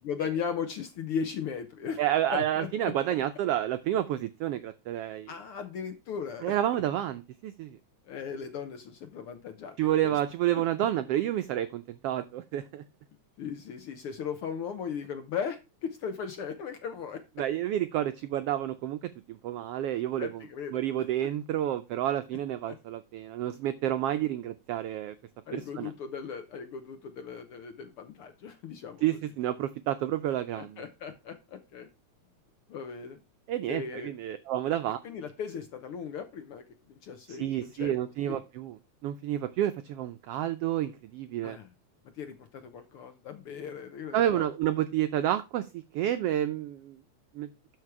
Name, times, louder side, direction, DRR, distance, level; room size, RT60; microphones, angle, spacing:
voice 1, 0.0-2.0 2.3-2.9 5.3-6.8 8.0-9.8 10.0-10.2 13.4-17.2 20.2-20.8 21.2-21.3 22.7-22.8 25.5-29.0 30.6-31.9 32.7-33.2 33.7-34.1 35.0-37.9 38.3-38.4 41.4-41.7 42.1-44.5, left 7 dB, 70° left, 9 dB, 1.4 m, -37 dB
voice 2, 2.0-5.3 6.4-7.8 9.8-12.8 17.4-20.3 20.7-25.1 25.5-25.9 29.0-30.8 33.5-35.0 37.3-38.8 39.0-41.6 44.1-47.0 47.3-47.5, right 12 dB, 85° right, 10 dB, 1.3 m, -30 dB
12.5 x 4.9 x 4.7 m, 0.27 s
omnidirectional pair, 3.4 m